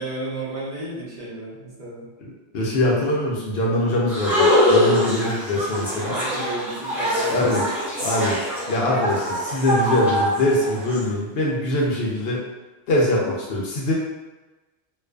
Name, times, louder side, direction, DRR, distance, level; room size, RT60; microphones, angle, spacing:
voice 1, 0.0-2.1 6.1-7.4, right 2 dB, 45° right, -8 dB, 0.9 m, -33 dB
voice 2, 2.2-6.2 7.3-7.7 8.0-8.4 8.7-12.4 12.9-13.9, left 1 dB, 65° left, -3 dB, 0.8 m, -23 dB
sound 1, 4.1-11.0, left 1 dB, ahead, 0.6 m, -23 dB
2.4 x 2.4 x 2.2 m, 1.2 s
omnidirectional pair, 1.1 m